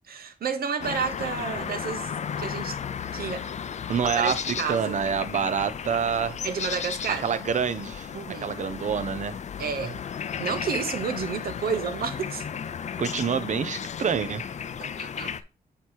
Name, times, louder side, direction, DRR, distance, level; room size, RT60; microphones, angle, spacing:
voice 1, 0.1-2.8 3.1-3.5 4.2-5.0 6.4-7.2 8.1-8.5 9.6-10.0 10.4-12.4 14.8-15.3, right 6 dB, 75° right, 0.9 m, -31 dB
sound 1, 0.8-15.4, left 7 dB, 50° left, 0.4 m, -34 dB
voice 2, 3.9-6.4 7.2-8.1 8.4-9.4 13.0-14.5, right 7 dB, 50° right, 0.6 m, -27 dB
8.1 x 3.0 x 4.5 m
wide cardioid pair, 115°, 16 cm